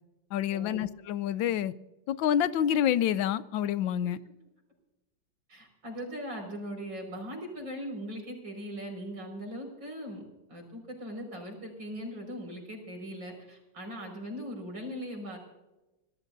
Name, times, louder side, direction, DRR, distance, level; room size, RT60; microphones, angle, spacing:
voice 1, 0.3-1.7 2.1-4.2, left 10 dB, 85° left, 1.4 m, -28 dB
voice 2, 5.5-10.2 10.5-15.4, equal, 75° right, 6.2 m, -40 dB
26.0 x 17.5 x 2.7 m
omnidirectional pair, 2.0 m